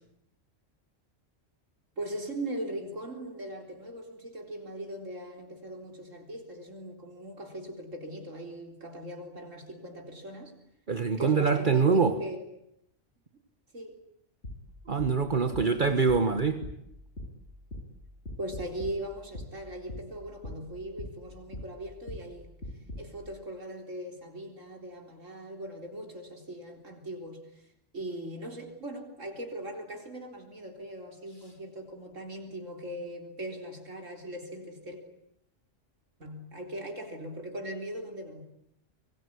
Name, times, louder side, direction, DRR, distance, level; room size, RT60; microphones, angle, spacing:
voice 1, 2.0-10.5 11.2-12.4 13.7-14.0 15.5-16.0 18.4-22.5 23.0-27.6 27.9-35.0 36.2-38.4, right 1 dB, 80° right, 3 dB, 4.3 m, -40 dB
voice 2, 10.9-12.2 14.9-16.6, right 5 dB, 40° right, 8 dB, 1.4 m, -24 dB
sound 1, 14.4-23.2, left 1 dB, 65° left, 6.9 m, -43 dB
25.0 x 22.0 x 9.6 m, 0.77 s
omnidirectional pair, 1.3 m